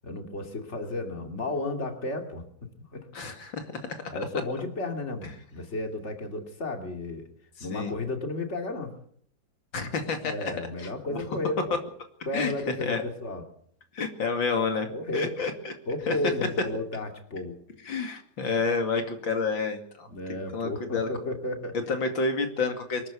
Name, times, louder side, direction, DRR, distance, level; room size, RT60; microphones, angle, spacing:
voice 1, 0.0-2.4 2.9-3.1 4.1-7.3 7.6-8.9 10.2-11.7 12.2-13.4 14.9-15.3 15.9-17.6 20.1-21.8, left 2 dB, 35° left, 5 dB, 3.1 m, -33 dB
voice 2, 3.1-3.8 7.6-7.9 9.7-10.5 10.8-10.9 12.3-12.5 12.8-13.0 13.9-14.9 15.1-15.7 16.1-16.2 17.8-20.1 20.5-21.1 21.9-23.0, left 4 dB, 85° left, 6 dB, 3.1 m, -29 dB
23.5 x 13.5 x 8.4 m, 0.63 s
omnidirectional pair, 2.0 m